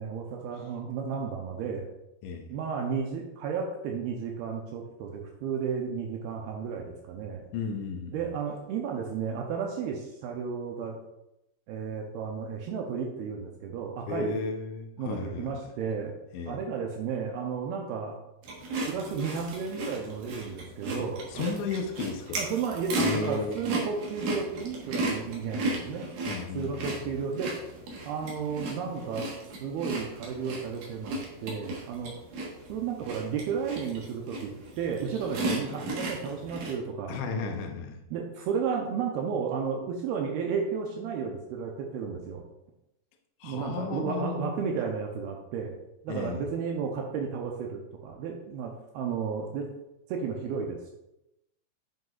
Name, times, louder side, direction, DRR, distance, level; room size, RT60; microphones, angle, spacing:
voice 1, 0.0-1.9 2.5-7.4 8.1-11.0 11.7-14.3 15.0-16.1 16.5-18.1 18.9-21.6 22.4-26.1 26.5-27.5 28.0-29.3 29.6-32.2 32.7-37.1 38.1-42.4 43.4-45.8 46.0-49.7 50.1-50.9, right 6 dB, 80° right, 1 dB, 2.3 m, -33 dB
voice 2, 7.5-8.1 14.1-15.6 16.3-16.6 21.0-21.1 21.3-22.5 23.0-23.6 26.3-26.9 37.1-38.0 43.4-44.7 46.1-46.4, left 4 dB, 85° left, 4 dB, 3.1 m, -34 dB
sound 1, 18.4-36.7, right 1 dB, 60° right, 2.1 m, -36 dB
7.8 x 7.8 x 2.4 m, 0.91 s
omnidirectional pair, 5.0 m